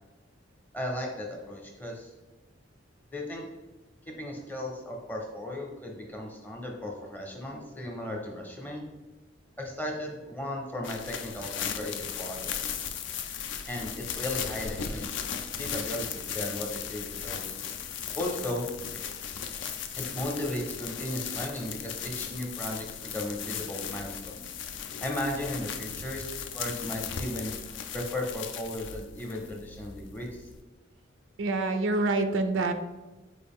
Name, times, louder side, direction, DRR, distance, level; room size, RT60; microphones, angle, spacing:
voice 1, 0.7-2.1 3.1-3.4 4.1-8.9 9.6-12.8 13.6-15.1 15.6-17.6 18.1-18.7 20.0-24.5 25.0-27.5 27.9-30.5, left 1 dB, 10° left, 0 dB, 0.6 m, -36 dB
sound 1, 10.8-30.6, left 8 dB, 70° left, 0.4 m, -37 dB
voice 2, 31.4-32.7, right 2 dB, 75° right, 8 dB, 0.4 m, -26 dB
4.6 x 2.4 x 3.5 m, 1.2 s
head